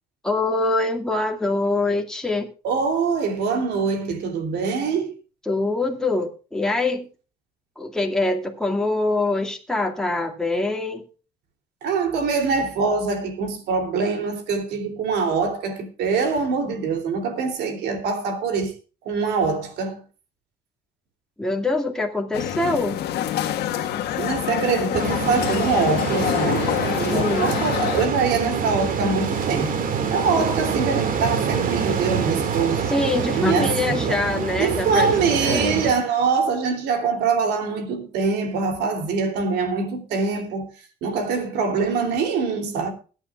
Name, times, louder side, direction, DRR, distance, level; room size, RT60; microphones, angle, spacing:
voice 1, 0.2-2.5 5.5-7.1 7.8-11.0 21.4-23.0 27.1-27.5 32.9-35.2 35.4-35.8, left 2 dB, 5° left, 2.1 m, -24 dB
voice 2, 2.6-5.2 11.8-18.7 19.0-20.0 24.2-29.8 30.1-32.9 33.3-34.2 34.6-40.7 41.0-42.9, right 5 dB, 80° right, 3.1 m, -24 dB
sound 1, 22.3-28.1, left 11 dB, 75° left, 1.5 m, -26 dB
sound 2, 24.9-35.9, right 6 dB, 55° right, 2.1 m, -26 dB
21.0 x 8.9 x 2.4 m
cardioid pair, 110°, 17 cm